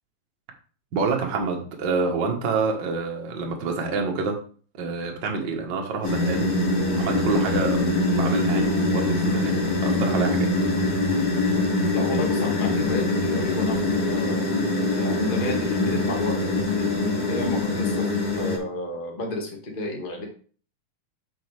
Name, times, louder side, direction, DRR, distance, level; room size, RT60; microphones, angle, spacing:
voice 1, 0.9-4.4 4.8-7.8 8.1-9.5 9.8-10.7, right 4 dB, 50° right, 2 dB, 1.4 m, -27 dB
sound 1, 6.0-18.6, left 2 dB, 50° left, 3.2 m, -23 dB
voice 2, 11.9-14.5 14.9-18.1 18.3-20.2, left 1 dB, 25° left, 0 dB, 1.2 m, -32 dB
8.6 x 6.0 x 3.4 m, 0.42 s
omnidirectional pair, 3.9 m